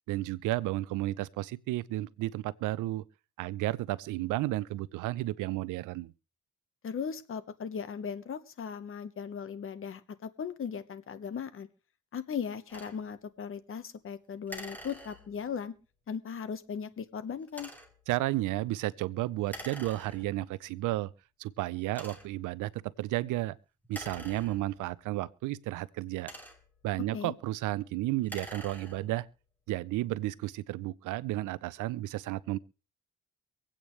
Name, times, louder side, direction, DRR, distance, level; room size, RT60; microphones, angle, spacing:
voice 1, 0.1-3.0 3.4-6.1 18.1-21.1 21.4-22.7 23.0-23.6 23.9-26.3 26.8-29.2 29.7-32.6, right 16 dB, 90° right, 0.6 m, -32 dB
voice 2, 6.8-11.7 12.1-15.7 16.1-17.7 27.1-27.3, left 7 dB, 45° left, 1.1 m, -38 dB
sound 1, 12.7-13.0 14.5-15.5 17.5-18.0 19.5-20.5 21.2-21.3 21.9-22.5 23.8-25.0 25.9-26.8 28.1-29.2, equal, 5° left, 2.6 m, -46 dB
24.5 x 8.7 x 3.2 m
cardioid pair, 90°, 30 cm